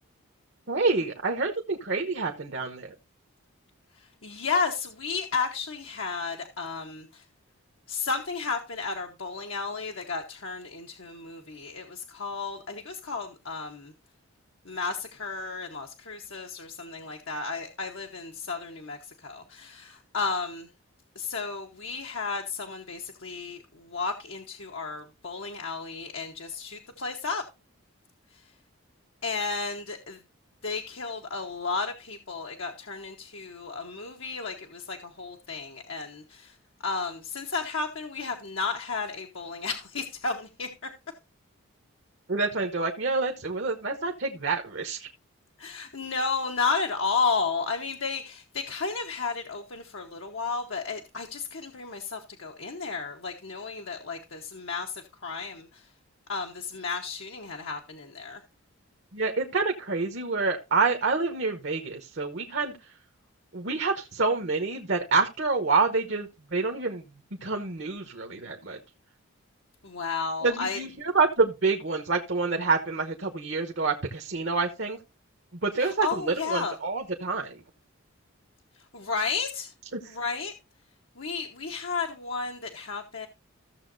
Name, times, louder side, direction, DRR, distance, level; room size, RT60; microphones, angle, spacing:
voice 1, 0.7-2.9 42.3-45.1 59.1-62.7 63.5-67.0 67.4-68.8 70.4-75.0 75.6-77.6 79.9-80.2, right 4 dB, 55° right, 1.0 m, -27 dB
voice 2, 4.0-7.2 7.9-13.9 14.6-20.7 21.1-27.4 28.3-28.4 29.2-30.2 30.6-36.6 36.8-40.9 45.6-55.9 56.3-58.4 69.8-70.8 75.8-76.7 78.9-79.7 80.1-80.5 81.2-83.3, left 4 dB, 65° left, 1.1 m, -33 dB
15.0 x 7.0 x 2.6 m
head